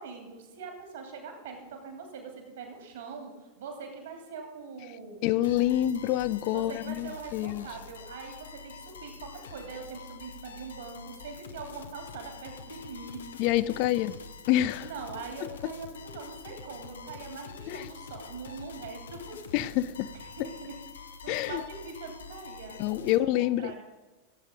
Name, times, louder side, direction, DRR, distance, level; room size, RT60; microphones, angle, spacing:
voice 1, 0.0-3.3 3.6-5.2 6.4-14.0 14.8-23.8, right 4 dB, 60° right, 3 dB, 3.0 m, -43 dB
voice 2, 5.2-7.7 13.4-14.1 14.5-14.9 17.7-17.9 19.5-20.1 20.4-20.5 21.3-21.6 22.8-23.8, left 14 dB, 45° left, 16 dB, 0.4 m, -27 dB
sound 1, 5.4-23.2, left 5 dB, 65° left, 0.8 m, -46 dB
15.0 x 8.0 x 5.2 m, 1.2 s
figure-of-eight pair, 90°, 0 cm